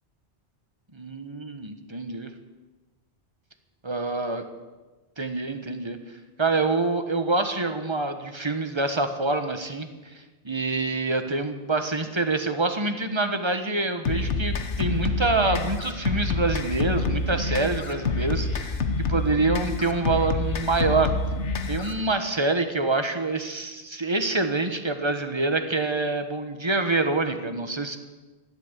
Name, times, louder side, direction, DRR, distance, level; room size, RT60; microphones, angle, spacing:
voice 1, 0.9-2.3 3.8-4.4 5.2-6.0 6.4-18.8 19.1-21.1 21.7-28.0, right 3 dB, 25° right, 7 dB, 1.3 m, -26 dB
sound 1, 14.1-22.0, left 3 dB, 85° left, 1.4 m, -27 dB
14.0 x 11.5 x 8.1 m, 1.2 s
omnidirectional pair, 1.2 m